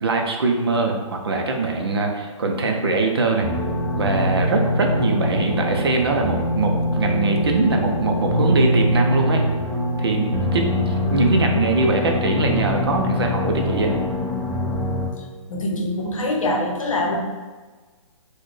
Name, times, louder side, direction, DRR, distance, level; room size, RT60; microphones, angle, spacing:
voice 1, 0.0-3.5 4.0-9.4 10.0-14.0, right 3 dB, 50° right, 2 dB, 0.4 m, -22 dB
sound 1, 3.4-15.1, left 1 dB, 10° left, 0.4 m, -23 dB
voice 2, 15.5-17.2, left 1 dB, 75° left, 1 dB, 0.7 m, -24 dB
3.9 x 2.1 x 3.1 m, 1.4 s
hypercardioid pair, 180°, 17 cm